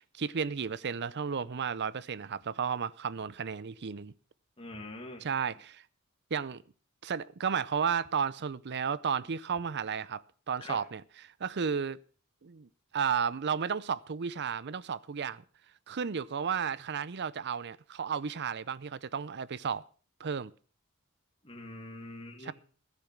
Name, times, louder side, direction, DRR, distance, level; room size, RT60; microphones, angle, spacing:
voice 1, 0.0-4.1 5.2-5.8 6.3-6.6 7.0-10.2 10.5-12.0 12.4-15.4 15.9-19.8 20.2-20.5 22.4-22.5, right 6 dB, 50° right, 0.6 m, -33 dB
voice 2, 4.6-5.2 10.6-10.8 21.4-22.5, left 2 dB, 25° left, 2.1 m, -43 dB
13.5 x 10.5 x 5.9 m
head